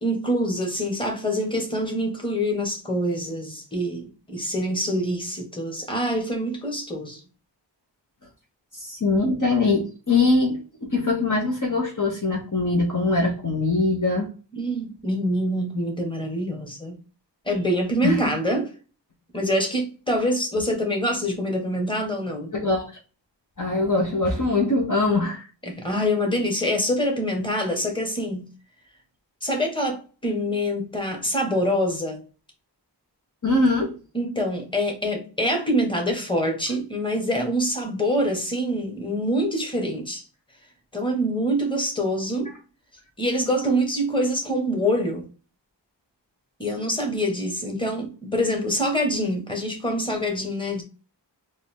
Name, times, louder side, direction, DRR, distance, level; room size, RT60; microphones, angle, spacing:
voice 1, 0.0-7.2 14.5-17.0 17.4-18.7 19.3-22.5 25.6-28.5 29.4-32.2 34.1-40.2 40.9-42.5 43.2-45.3 46.6-50.8, equal, 10° left, 1.5 m, -25 dB
voice 2, 8.7-14.3 18.0-18.3 22.5-22.9 23.6-25.5 33.4-34.0, left 3 dB, 45° left, 1.1 m, -22 dB
3.7 x 2.6 x 3.6 m
wide cardioid pair, 60°, 44 cm